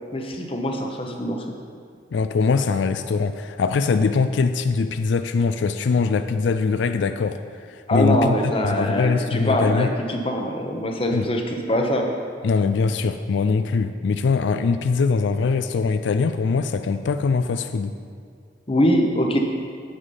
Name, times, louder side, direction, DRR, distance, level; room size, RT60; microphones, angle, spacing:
voice 1, 0.1-1.5 7.9-12.2 18.7-19.4, equal, 30° left, 2 dB, 0.9 m, -23 dB
voice 2, 2.1-7.4 7.7-8.3 8.6-9.9 11.1-11.3 12.4-17.9, left 4 dB, 85° left, 9 dB, 0.4 m, -22 dB
8.2 x 8.0 x 5.5 m, 2.1 s
head